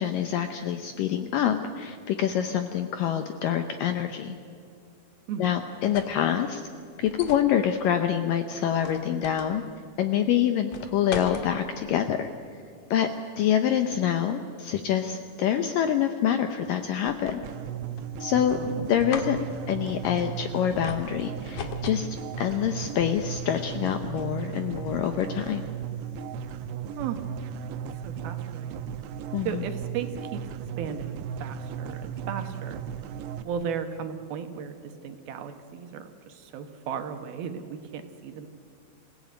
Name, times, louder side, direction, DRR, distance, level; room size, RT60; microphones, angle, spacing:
voice 1, 0.0-4.4 5.4-6.6 7.0-9.6 10.0-12.3 12.9-13.1 13.4-17.4 18.2-18.6 18.9-19.4 19.7-22.1 22.4-25.6 29.3-29.6, left 9 dB, 75° left, 7 dB, 2.0 m, -26 dB
sound 1, 5.6-6.3 7.1-7.5 8.8-9.6 10.7-11.5 17.1-17.7 18.0-18.5 19.0-19.3 20.8-21.1 21.6-22.1, left 7 dB, 60° left, 2.6 m, -38 dB
sound 2, 17.4-33.4, right 8 dB, 90° right, 3.1 m, -36 dB
voice 2, 18.5-18.9 27.0-27.2 28.0-28.9 29.4-30.4 30.8-32.8 33.4-38.5, right 7 dB, 70° right, 7 dB, 2.8 m, -35 dB
26.5 x 16.5 x 9.1 m, 2.5 s
omnidirectional pair, 4.9 m